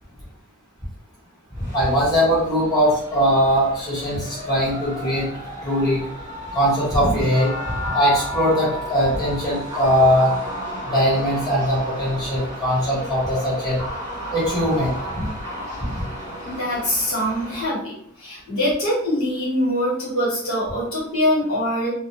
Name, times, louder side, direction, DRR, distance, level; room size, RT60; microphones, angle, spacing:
sound 1, 1.5-17.6, equal, 15° right, 0.7 m, -33 dB
voice 1, 1.7-5.3 5.6-6.0 6.5-7.5 7.8-10.3 10.8-13.8 14.3-15.2 15.8-16.0, equal, 15° left, -9 dB, 1.1 m, -20 dB
voice 2, 16.4-21.9, left 1 dB, 65° left, -6 dB, 1.3 m, -23 dB
2.2 x 2.1 x 3.0 m, 0.66 s
head